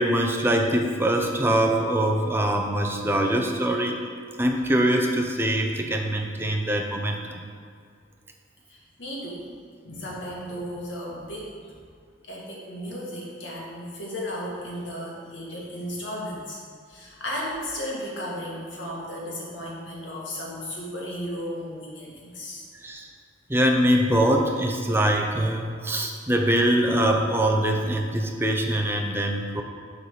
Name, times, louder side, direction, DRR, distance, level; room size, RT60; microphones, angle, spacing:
voice 1, 0.0-4.0 4.4-7.4 22.8-23.1 23.5-29.6, right 1 dB, 10° right, 2 dB, 0.6 m, -23 dB
voice 2, 8.7-9.4 9.8-11.5 12.2-16.6 16.9-22.6, equal, 80° left, -4 dB, 1.9 m, -34 dB
7.1 x 4.0 x 6.6 m, 2.1 s
head